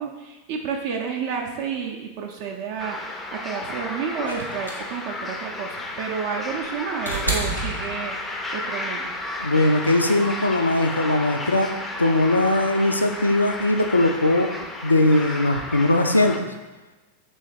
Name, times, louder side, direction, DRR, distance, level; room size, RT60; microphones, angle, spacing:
voice 1, 0.0-8.2 8.5-9.1, right 6 dB, 50° right, 1 dB, 0.4 m, -30 dB
sound 1, 2.8-16.4, left 2 dB, 15° left, 0.4 m, -33 dB
sound 2, 4.2-8.5 9.8-9.9, right 2 dB, 90° right, 0.7 m, -30 dB
voice 2, 9.4-11.7 12.0-14.5 14.8-16.4, left 2 dB, 80° left, 7 dB, 0.3 m, -20 dB
3.3 x 3.1 x 4.2 m, 1.1 s
figure-of-eight pair, 90°, 0 cm